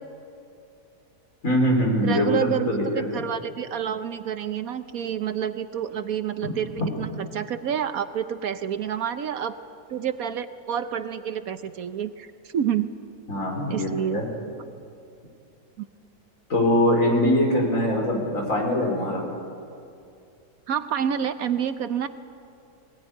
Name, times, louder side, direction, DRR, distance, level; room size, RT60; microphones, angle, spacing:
voice 1, 1.4-2.8 6.4-6.5 6.8-6.9 13.3-14.2 16.5-19.3, equal, 55° left, 0 dB, 4.8 m, -22 dB
voice 2, 2.0-9.6 9.9-12.9 13.7-14.2 20.7-22.1, right 9 dB, 70° right, 10 dB, 1.2 m, -28 dB
20.5 x 18.5 x 9.8 m, 2.5 s
omnidirectional pair, 1.7 m